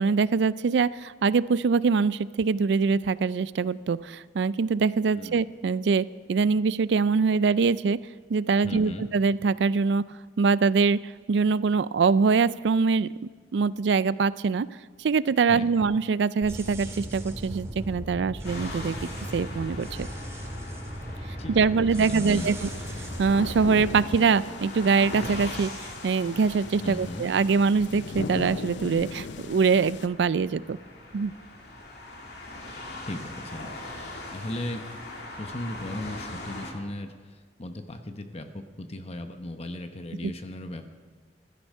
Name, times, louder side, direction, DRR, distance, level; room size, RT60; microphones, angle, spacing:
voice 1, 0.0-8.0 8.3-10.0 10.4-13.1 13.5-14.7 15.0-18.9 19.3-20.1 21.5-22.6 23.2-30.8 31.1-31.3 40.2-40.3, right 5 dB, 75° right, 18 dB, 0.4 m, -23 dB
voice 2, 8.6-9.0 15.5-15.9 21.4-22.7 26.8-27.3 33.1-33.7 34.3-35.0 35.4-40.9, left 1 dB, 35° left, 7 dB, 0.9 m, -37 dB
sound 1, 16.4-24.0, equal, 15° right, 2.0 m, -37 dB
sound 2, 18.4-36.7, left 1 dB, 65° left, 2.6 m, -41 dB
sound 3, 22.2-30.1, left 4 dB, 80° left, 0.6 m, -39 dB
15.0 x 12.5 x 5.4 m, 1.6 s
head